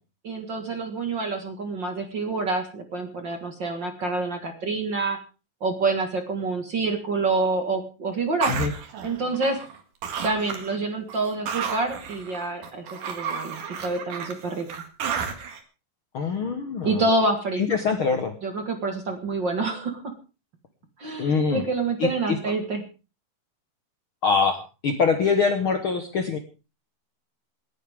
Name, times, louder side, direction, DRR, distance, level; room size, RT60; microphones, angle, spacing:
voice 1, 0.2-5.2 5.6-8.5 9.0-9.6 10.2-14.7 16.8-17.6 18.4-20.0 21.0-22.8, right 3 dB, 40° right, 5 dB, 1.9 m, -27 dB
sound 1, 8.4-9.8 10.0-10.8 11.1-15.6, right 6 dB, 70° right, 3.3 m, -32 dB
voice 2, 16.1-17.0 17.6-18.3 21.2-21.6 22.0-22.4 24.2-26.4, left 5 dB, 55° left, 6 dB, 1.6 m, -24 dB
28.0 x 10.0 x 3.6 m, 0.33 s
omnidirectional pair, 3.8 m